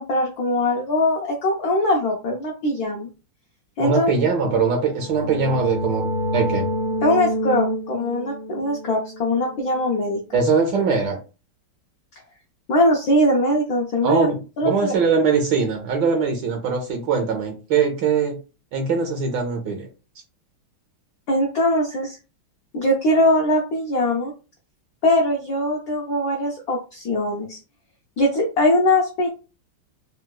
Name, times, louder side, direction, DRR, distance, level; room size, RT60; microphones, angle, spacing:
voice 1, 0.0-3.1 3.8-4.1 7.0-10.2 12.7-14.3 14.6-14.9 21.3-22.2 22.7-24.3 25.0-27.6 28.2-29.3, left 1 dB, 80° left, -1 dB, 0.8 m, -21 dB
voice 2, 3.8-6.1 6.3-6.7 10.3-11.2 14.0-18.4 18.7-19.9, right 5 dB, 75° right, 3 dB, 1.1 m, -21 dB
sound 1, 4.8-10.3, equal, 55° left, 1.2 m, -28 dB
3.7 x 2.3 x 2.2 m, 0.33 s
omnidirectional pair, 2.3 m